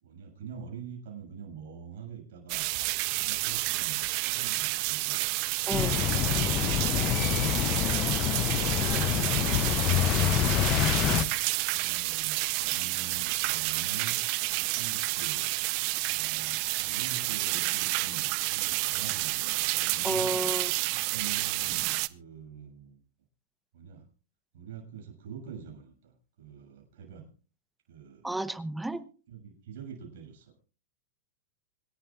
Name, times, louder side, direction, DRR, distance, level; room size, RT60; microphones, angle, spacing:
voice 1, 0.0-2.7 3.1-5.3 5.9-7.9 8.4-10.7 11.0-11.4 11.7-14.2 14.6-15.5 16.0-20.3 20.9-21.8 22.1-23.0 23.7-24.1 24.5-27.3 27.9-28.3 29.3-30.7, right 7 dB, 70° right, 1 dB, 6.8 m, -44 dB
sound 1, 2.5-22.1, right 24 dB, 50° right, 0.6 m, -30 dB
sound 2, 5.7-11.2, left 13 dB, 40° left, 0.6 m, -27 dB
voice 2, 5.7-6.0 20.0-20.7 28.2-29.0, right 2 dB, 5° right, 14 dB, 0.9 m, -31 dB
26.0 x 11.0 x 2.5 m, 0.36 s
hypercardioid pair, 125°, 0 cm